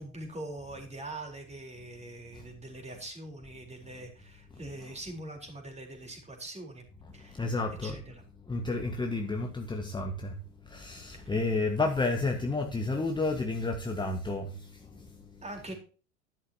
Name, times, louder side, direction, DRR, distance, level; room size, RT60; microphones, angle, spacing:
voice 1, 0.0-6.8 7.1-7.5 7.8-8.2 11.1-11.3 15.4-15.7, right 2 dB, 15° right, 2 dB, 4.1 m, -43 dB
voice 2, 7.4-7.9 8.5-10.3 10.7-14.4, left 3 dB, 10° left, 3 dB, 1.6 m, -30 dB
12.5 x 11.0 x 2.9 m, 0.37 s
figure-of-eight pair, 80°, 42 cm